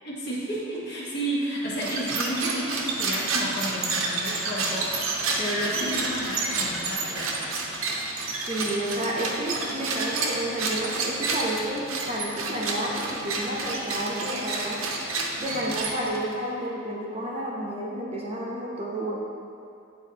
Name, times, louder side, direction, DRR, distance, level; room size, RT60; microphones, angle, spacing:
voice 1, 0.0-7.4 15.7-15.8, right 1 dB, 50° left, -6 dB, 1.2 m, -31 dB
sound 1, 1.7-16.3, right 3 dB, 75° right, 0.7 m, -30 dB
voice 2, 8.5-14.8 15.4-19.1, right 1 dB, 30° right, -4 dB, 0.7 m, -31 dB
9.1 x 4.1 x 2.8 m, 2.6 s
head